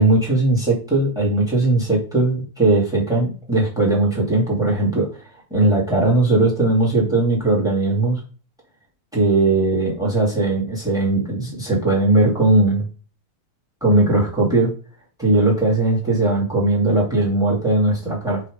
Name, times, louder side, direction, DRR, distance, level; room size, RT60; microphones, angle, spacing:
voice 1, 0.0-5.1 5.5-8.2 9.1-12.9 13.8-14.7 15.2-18.4, right 2 dB, ahead, -2 dB, 1.1 m, -18 dB
4.9 x 4.3 x 5.0 m, 0.38 s
omnidirectional pair, 4.2 m